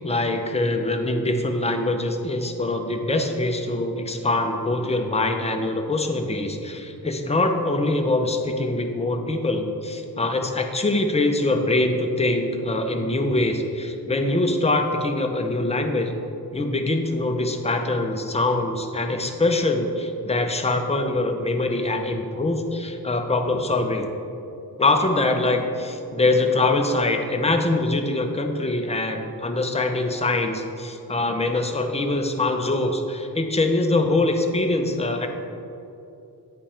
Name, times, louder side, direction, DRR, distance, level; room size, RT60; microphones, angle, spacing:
voice 1, 0.0-16.1 16.5-24.1 24.8-35.3, left 2 dB, 15° left, 4 dB, 0.6 m, -23 dB
8.6 x 5.2 x 4.3 m, 2.8 s
wide cardioid pair, 95°, 41 cm